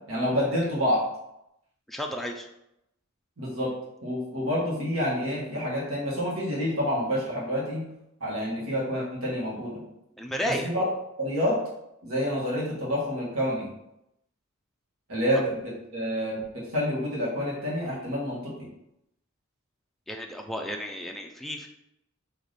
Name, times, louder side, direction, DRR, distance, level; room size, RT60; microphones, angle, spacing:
voice 1, 0.1-1.0 3.4-3.7 4.0-7.8 8.2-9.8 10.6-10.8 11.2-11.6 12.0-13.7 15.1-16.4 16.7-18.5, equal, 90° right, -5 dB, 1.5 m, -28 dB
voice 2, 1.9-2.5 10.2-10.7 20.1-21.7, equal, ahead, 2 dB, 0.3 m, -33 dB
3.3 x 2.9 x 4.0 m, 0.84 s
head